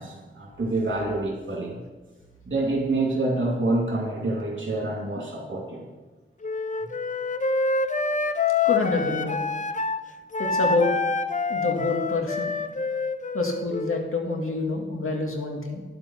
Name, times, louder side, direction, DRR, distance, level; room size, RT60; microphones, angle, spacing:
voice 1, 0.0-1.8 2.5-5.8, right 2 dB, 65° right, -1 dB, 2.9 m, -27 dB
Wind instrument woodwind instrument, 6.4-10.0 10.3-14.1, left 4 dB, 35° left, 0.6 m, -26 dB
voice 2, 8.6-9.4 10.4-10.9 11.5-12.5 13.3-15.8, left 3 dB, 85° left, 1 dB, 2.0 m, -27 dB
11.0 x 7.9 x 5.9 m, 1.3 s
wide cardioid pair, 90°, 21 cm